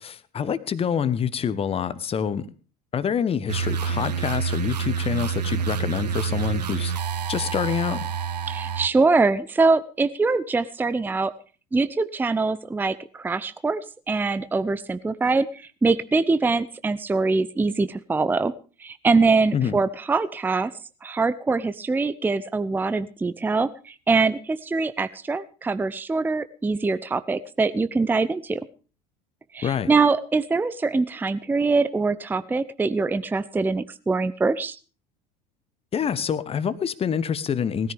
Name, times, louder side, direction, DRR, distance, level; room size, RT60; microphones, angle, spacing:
voice 1, 0.0-2.4 2.9-6.9 7.3-8.0 19.5-19.8 29.6-29.9 35.9-37.9, left 7 dB, 30° left, 15 dB, 1.2 m, -26 dB
sound 1, 3.5-8.9, right 6 dB, 80° right, 0.7 m, -27 dB
voice 2, 8.5-11.3 11.7-13.8 14.1-18.5 18.8-20.7 21.0-28.6 29.5-34.8, right 3 dB, 10° right, 15 dB, 0.6 m, -23 dB
19.5 x 14.0 x 3.5 m, 0.36 s
figure-of-eight pair, 70°, 21 cm